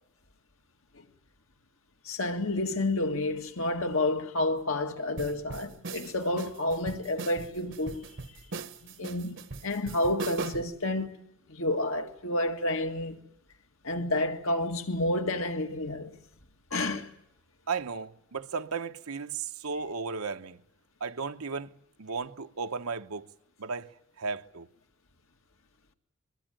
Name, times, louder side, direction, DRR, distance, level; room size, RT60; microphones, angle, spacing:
voice 1, 2.1-8.1 8.8-13.2 13.8-16.2 16.7-17.1, left 1 dB, 70° left, 1.9 m, -30 dB
sound 1, 5.2-10.8, right 4 dB, 60° right, 1.0 m, -40 dB
voice 2, 17.7-20.6 21.0-21.7 22.0-23.3 23.6-23.9 24.2-24.7, right 5 dB, 85° right, 1.0 m, -35 dB
23.0 x 21.5 x 9.2 m
head